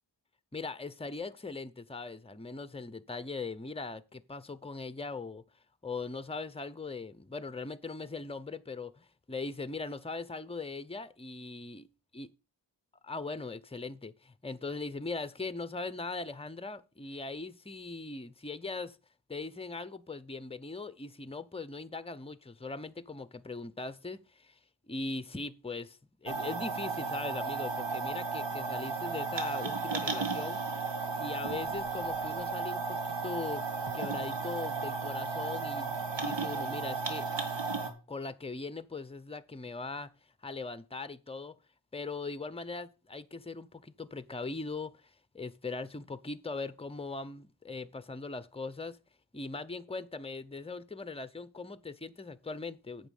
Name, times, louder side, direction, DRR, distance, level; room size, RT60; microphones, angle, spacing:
voice 1, 0.5-5.4 5.8-11.9 12.1-12.3 13.0-19.0 19.3-24.6 24.9-30.6 31.2-33.7 33.9-37.3 38.1-40.1 40.4-41.5 41.9-49.0 49.3-53.1, left 3 dB, 15° left, 0.7 m, -40 dB
sound 1, 26.3-37.9, right 4 dB, 70° right, 1.8 m, -34 dB
8.8 x 6.1 x 6.5 m
wide cardioid pair, 65°, 45 cm